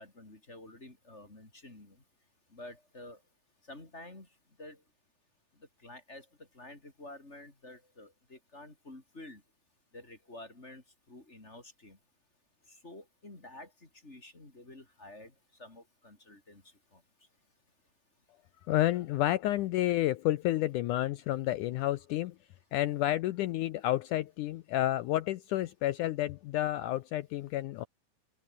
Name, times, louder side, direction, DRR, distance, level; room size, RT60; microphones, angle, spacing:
voice 1, 0.0-2.0 2.5-3.2 3.7-4.3 4.6-4.8 5.8-6.2 6.5-9.4 9.9-10.8 11.1-12.0 12.8-13.7 14.0-15.3 15.6-16.6 16.9-17.0, left 2 dB, 20° left, 3.9 m, -49 dB
voice 2, 18.7-22.4 22.7-27.9, left 14 dB, 80° left, 1.9 m, -30 dB
omnidirectional pair, 4.2 m